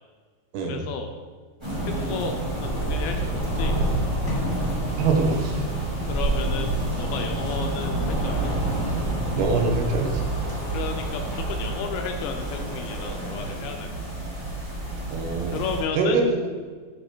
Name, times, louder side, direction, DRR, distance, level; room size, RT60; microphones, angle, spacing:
voice 1, 0.6-1.1 1.9-3.8 6.1-6.7 7.0-8.5 10.7-14.0 15.5-16.2, left 6 dB, 80° left, 4 dB, 2.3 m, -33 dB
sound 1, 1.6-15.8, right 1 dB, 15° right, 0.8 m, -28 dB
sound 2, 4.3-6.2, left 1 dB, 40° left, 1.7 m, -35 dB
voice 2, 5.0-5.7 9.4-10.3 15.1-15.6 16.0-16.7, right 3 dB, 85° right, 2 dB, 3.2 m, -24 dB
9.5 x 4.9 x 4.4 m, 1.5 s
omnidirectional pair, 4.7 m